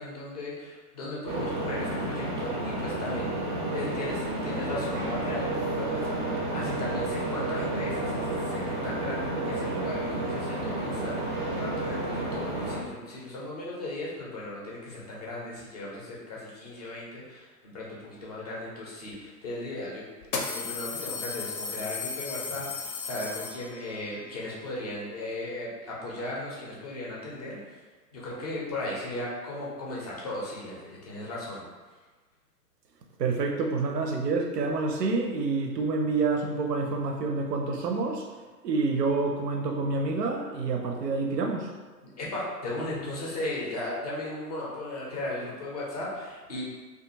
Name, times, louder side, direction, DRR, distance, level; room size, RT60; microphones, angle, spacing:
voice 1, 0.0-3.3 3.7-20.1 20.5-27.8 28.1-31.6 42.0-46.6, left 1 dB, 25° left, -5 dB, 0.4 m, -36 dB
sound 1, 1.3-12.8, right 2 dB, 35° right, 0.4 m, -31 dB
sound 2, 19.1-19.2 20.2-24.0, left 4 dB, 80° left, 0.6 m, -35 dB
voice 2, 33.2-38.3 38.6-41.7, right 3 dB, 80° right, 3 dB, 0.6 m, -28 dB
2.5 x 2.3 x 2.7 m, 1.3 s
figure-of-eight pair, 120°, 48 cm